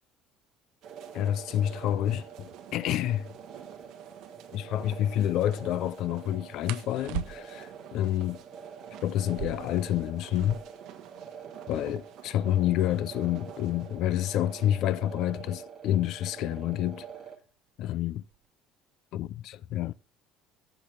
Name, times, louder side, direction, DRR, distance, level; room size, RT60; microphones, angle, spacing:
sound 1, 0.8-17.4, right 7 dB, 20° right, 1.8 m, -46 dB
sound 2, 0.8-15.0, right 10 dB, 50° right, 1.4 m, -51 dB
voice 1, 1.1-3.3 4.5-8.4 9.0-10.6 11.7-17.1 17.8-18.2 19.1-19.9, left 12 dB, 50° left, 0.4 m, -28 dB
sound 3, 3.9-4.2 6.6-7.7 9.2-10.8 11.2-11.3 11.5-12.0 12.7-15.2 16.2-16.5 16.9-17.4 17.8-18.5, right 14 dB, 90° right, 0.6 m, -41 dB
14.5 x 6.1 x 3.3 m
cardioid pair, 175°, 0 cm